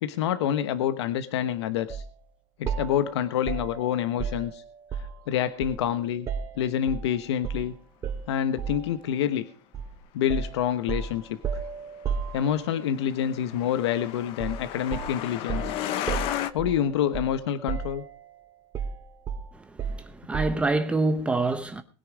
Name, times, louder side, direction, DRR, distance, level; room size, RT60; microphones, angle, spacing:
voice 1, 0.0-2.0 2.6-4.6 4.9-6.3 6.6-7.7 8.3-9.5 10.1-11.6 12.3-15.7 16.5-18.0, left 10 dB, 85° left, 1.1 m, -27 dB
sound 1, 1.9-2.1 2.7-5.3 5.6-7.1 7.4-7.7 8.0-8.9 9.7-9.9 10.3-12.9 14.4-14.7 14.9-17.4 17.7-18.3 18.7-20.7, right 6 dB, 25° right, 2.3 m, -34 dB
Truck, 12.4-16.5, left 12 dB, 40° left, 1.0 m, -34 dB
voice 2, 19.5-21.8, right 3 dB, 10° right, 0.8 m, -26 dB
20.5 x 9.8 x 5.0 m
supercardioid pair, 160°, 14 cm